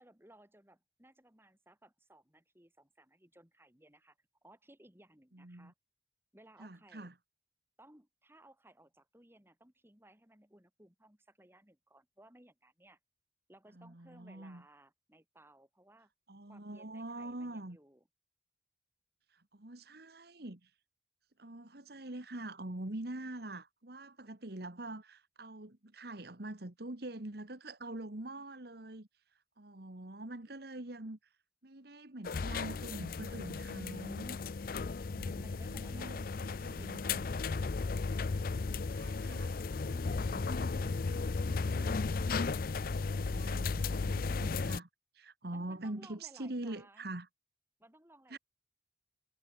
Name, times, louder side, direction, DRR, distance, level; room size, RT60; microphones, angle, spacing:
voice 1, 0.0-5.7 6.3-7.1 7.8-13.0 13.5-16.1 16.5-18.0 34.8-36.2 36.7-37.7 45.5-47.1 47.8-48.4, right 1 dB, 15° right, 3.4 m, -61 dB
voice 2, 5.3-5.7 6.6-7.1 13.7-14.6 16.3-17.8 19.3-20.7 21.4-29.1 29.6-31.2 31.6-34.4 34.9-37.2 38.9-39.6 39.9-42.1 42.9-44.9 45.1-47.3 48.3-48.4, right 1 dB, 60° right, 1.8 m, -45 dB
sound 1, 32.2-44.8, left 4 dB, 50° left, 0.5 m, -35 dB
head